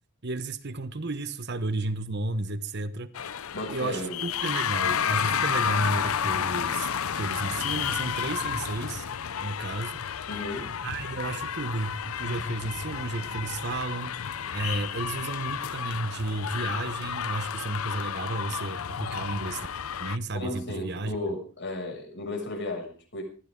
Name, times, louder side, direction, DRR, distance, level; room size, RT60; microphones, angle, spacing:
voice 1, 0.2-3.1 3.7-9.1 9.4-10.0 10.8-14.2 14.5-19.7 20.0-21.2, right 2 dB, 50° right, 1.1 m, -32 dB
sound 1, 3.1-20.2, left 8 dB, 75° left, 0.6 m, -31 dB
voice 2, 3.5-4.2 10.3-10.7 20.3-23.2, left 2 dB, 55° left, 6.7 m, -34 dB
20.5 x 14.5 x 3.8 m
head